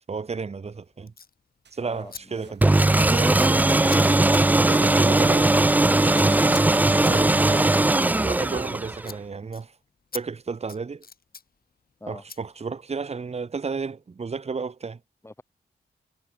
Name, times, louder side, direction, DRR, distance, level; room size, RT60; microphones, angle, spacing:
voice 1, 0.1-1.1 1.7-2.6 3.1-3.9 4.7-5.5 7.0-9.7 10.1-11.0 12.1-15.0, right 5 dB, 35° right, 0.9 m, -32 dB
Scissors, 1.1-1.3 2.1-2.2 2.5-2.7 3.1-8.7 9.0-9.2 9.5-9.6 10.1-10.2 10.5-11.5 12.3-12.4, left 5 dB, 55° left, 3.7 m, -42 dB
sound 1, 1.6-6.1, right 7 dB, 70° right, 6.2 m, -52 dB
voice 2, 1.8-2.5 6.1-6.8 12.0-12.2 15.2-15.4, left 1 dB, 15° left, 1.7 m, -41 dB
sound 2, 2.6-9.1, right 2 dB, 10° right, 0.3 m, -19 dB
cardioid pair, 60°, 18 cm